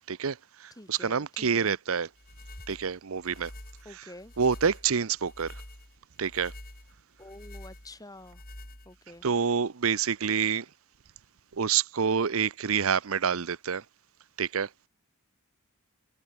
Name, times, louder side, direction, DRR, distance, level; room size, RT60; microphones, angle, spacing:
voice 1, 0.1-2.1 2.7-3.5 4.4-5.6 6.2-6.5 9.2-10.7 11.6-13.8 14.4-14.7, right 6 dB, 70° right, 0.7 m, -27 dB
voice 2, 0.7-1.8 3.9-4.3 7.2-8.4 8.9-9.3, left 1 dB, 15° left, 3.5 m, -48 dB
sound 1, 2.2-9.2, left 1 dB, 45° left, 6.9 m, -47 dB
head